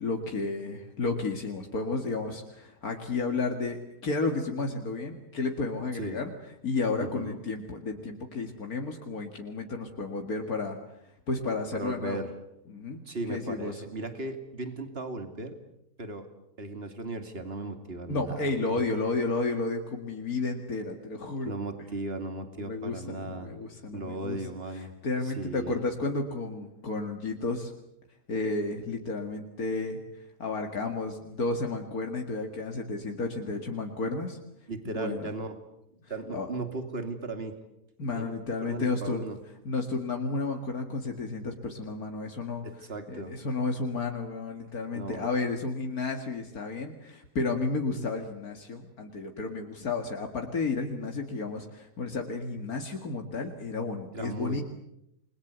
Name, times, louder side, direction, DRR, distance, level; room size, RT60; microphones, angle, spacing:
voice 1, 0.0-6.3 6.6-10.8 11.3-12.2 12.7-13.8 18.1-21.6 22.6-24.4 24.7-27.7 28.3-34.4 34.9-35.3 36.3-36.5 38.0-39.2 39.6-42.7 43.1-54.6, left 3 dB, 75° left, 3 dB, 2.6 m, -32 dB
voice 2, 7.0-7.4 11.7-12.3 13.1-15.6 16.0-16.3 16.6-18.8 21.4-23.5 23.9-24.9 25.2-25.8 34.7-35.6 35.9-37.6 38.1-39.4 42.6-43.3 44.9-45.3 54.1-54.6, right 2 dB, 40° right, 7 dB, 2.9 m, -37 dB
29.0 x 22.0 x 8.2 m, 0.82 s
omnidirectional pair, 1.6 m